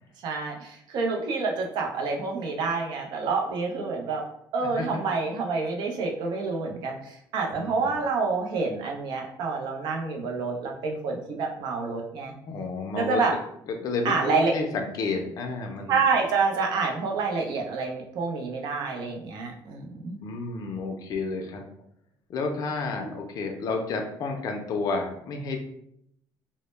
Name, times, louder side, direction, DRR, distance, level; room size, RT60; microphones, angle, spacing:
voice 1, 0.2-4.2 4.5-12.3 12.9-13.3 14.0-14.5 15.9-20.2, right 4 dB, 70° right, 1 dB, 0.5 m, -28 dB
voice 2, 7.5-7.9 12.4-13.2 13.7-16.0 20.2-21.6 22.3-25.6, left 3 dB, 50° left, 3 dB, 0.4 m, -31 dB
2.0 x 2.0 x 3.0 m, 0.73 s
cardioid pair, 120°, 8 cm